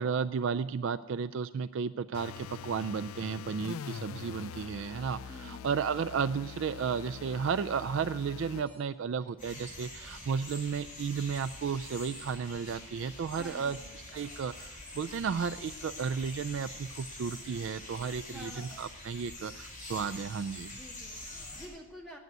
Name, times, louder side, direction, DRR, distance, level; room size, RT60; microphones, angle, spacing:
voice 1, 0.0-13.8 14.1-20.7, right 6 dB, 60° right, 13 dB, 0.3 m, -33 dB
sound 1, 2.1-8.7, left 8 dB, 75° left, 0.4 m, -44 dB
voice 2, 5.3-5.7 13.4-14.0 18.3-18.8 20.6-22.2, equal, ahead, -2 dB, 2.0 m, -49 dB
sound 2, 8.5-8.9 9.2-13.7, right 1 dB, 20° right, 2.4 m, -62 dB
sound 3, 9.4-21.7, left 2 dB, 40° left, 4.9 m, -45 dB
9.3 x 9.2 x 9.4 m, 1.1 s
head